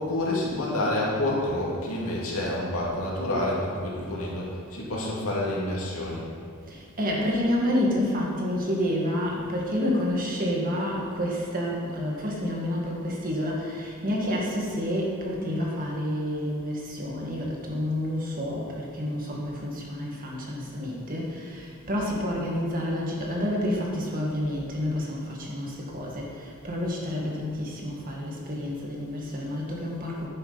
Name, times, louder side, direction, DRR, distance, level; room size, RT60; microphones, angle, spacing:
voice 1, 0.0-6.3, left 1 dB, 70° left, -5 dB, 2.5 m, -28 dB
voice 2, 6.7-30.3, left 1 dB, 40° right, -2 dB, 1.8 m, -29 dB
10.5 x 8.7 x 4.1 m, 2.3 s
head